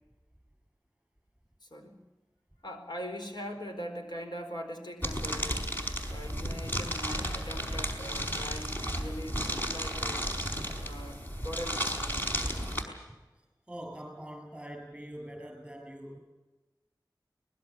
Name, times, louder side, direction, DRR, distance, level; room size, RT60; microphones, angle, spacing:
voice 1, 1.6-2.0 2.6-5.7 6.1-10.3 10.8-12.2, equal, 70° left, 4 dB, 4.4 m, -41 dB
sound 1, 5.0-12.8, equal, 25° left, 4.9 m, -33 dB
voice 2, 13.7-16.2, right 1 dB, 10° right, 1 dB, 7.0 m, -43 dB
23.5 x 20.5 x 7.3 m, 1.1 s
wide cardioid pair, 55°, 8 cm